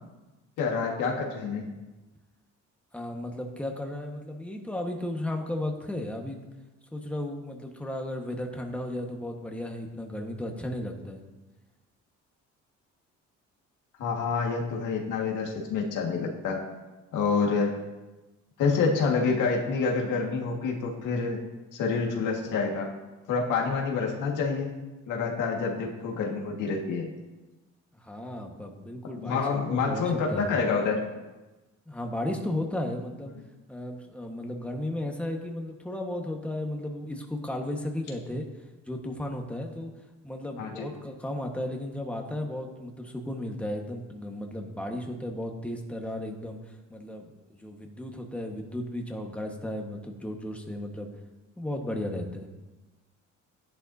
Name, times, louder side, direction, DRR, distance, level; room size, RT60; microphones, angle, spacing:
voice 1, 0.6-1.6 14.0-16.6 17.1-17.7 18.6-21.4 21.7-22.9 23.3-24.7 25.1-27.1 29.1-31.0 40.6-40.8, left 4 dB, 85° left, 0 dB, 1.9 m, -27 dB
voice 2, 2.9-6.5 6.9-11.2 27.9-30.5 31.9-33.3 33.7-38.5 38.9-39.9 40.2-51.1 51.6-52.5, left 1 dB, 5° left, 2 dB, 1.5 m, -34 dB
13.0 x 10.5 x 2.8 m, 1.1 s
cardioid pair, 90°, 30 cm